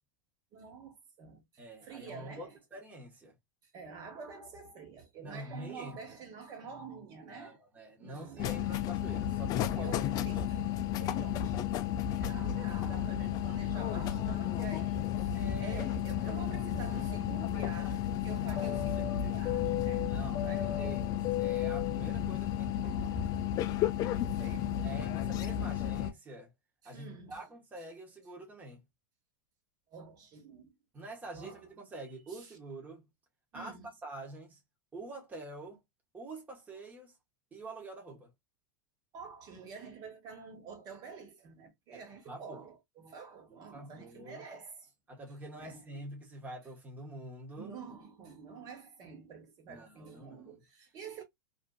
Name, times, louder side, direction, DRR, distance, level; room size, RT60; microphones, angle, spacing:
voice 1, 0.5-1.4 1.8-2.6 3.7-7.6 8.0-8.8 9.8-11.7 12.2-21.2 22.8-23.4 24.1-25.1 26.8-27.4 29.9-30.7 31.3-31.6 32.3-32.6 33.5-33.9 39.1-44.9 45.5-45.8 47.6-51.2, right 5 dB, 40° right, 1.1 m, -48 dB
voice 2, 1.6-3.3 5.2-6.0 7.3-10.4 12.1-12.3 15.3-15.9 18.5-19.8 20.0-23.0 24.4-26.5 26.8-28.8 30.9-33.0 33.5-34.6 34.9-35.8 36.1-37.2 37.5-38.3 41.9-42.6 43.5-44.4 45.1-47.7 49.7-50.6, right 2 dB, 15° right, 1.0 m, -46 dB
sound 1, 8.4-26.1, left 11 dB, 40° left, 0.4 m, -32 dB
2.6 x 2.5 x 2.2 m
hypercardioid pair, 115°, 10 cm